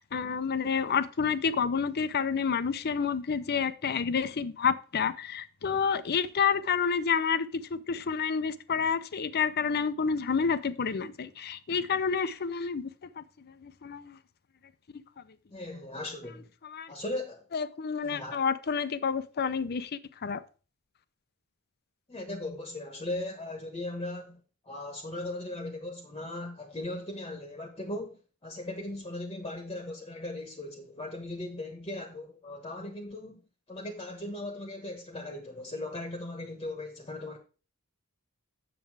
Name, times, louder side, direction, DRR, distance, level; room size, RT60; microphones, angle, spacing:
voice 1, 0.0-12.9 13.2-14.2 16.6-16.9 17.5-20.4, left 6 dB, 50° left, 0.5 m, -29 dB
voice 2, 15.5-16.5 16.9-17.4 18.0-18.4 19.5-19.6 22.1-24.4 24.6-33.4 33.7-37.4, left 1 dB, 25° left, 1.1 m, -38 dB
7.3 x 6.9 x 4.7 m
head